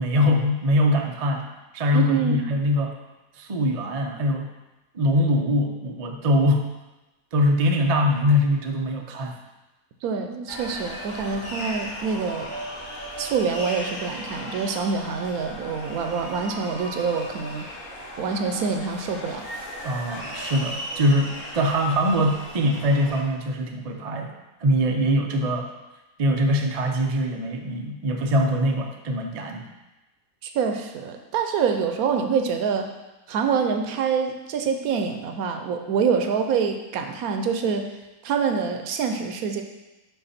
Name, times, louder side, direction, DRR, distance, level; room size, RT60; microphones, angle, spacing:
voice 1, 0.0-1.5 1.7-2.9 3.4-4.5 4.9-6.6 7.3-9.4 19.8-24.3 24.6-25.7 26.2-29.6, equal, 60° right, 3 dB, 0.4 m, -22 dB
voice 2, 1.9-2.4 10.0-12.5 13.2-17.7 18.2-19.5 30.4-32.9 33.3-37.9 38.2-39.6, right 6 dB, 75° right, 5 dB, 1.1 m, -26 dB
sound 1, 10.5-23.2, equal, 35° left, 1.0 m, -36 dB
5.8 x 5.4 x 4.2 m, 1.1 s
omnidirectional pair, 1.6 m